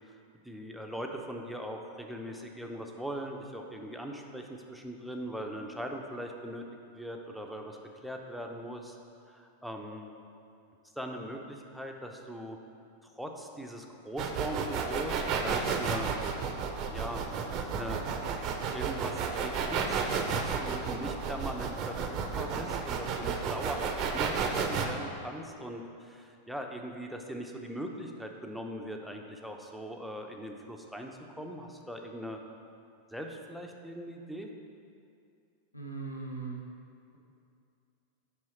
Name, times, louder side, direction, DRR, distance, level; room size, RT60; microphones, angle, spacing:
voice 1, 0.4-6.6 6.9-9.0 9.3-10.1 11.0-12.6 13.0-16.1 16.9-17.2 17.7-18.1 18.7-20.0 20.3-32.4 33.1-34.5, equal, ahead, 2 dB, 0.7 m, -40 dB
sound 1, 14.2-24.9, right 6 dB, 35° right, 0.7 m, -32 dB
voice 2, 35.7-36.6, right 4 dB, 85° left, -2 dB, 1.0 m, -39 dB
7.6 x 5.6 x 4.4 m, 2.5 s
figure-of-eight pair, 90°, 0 cm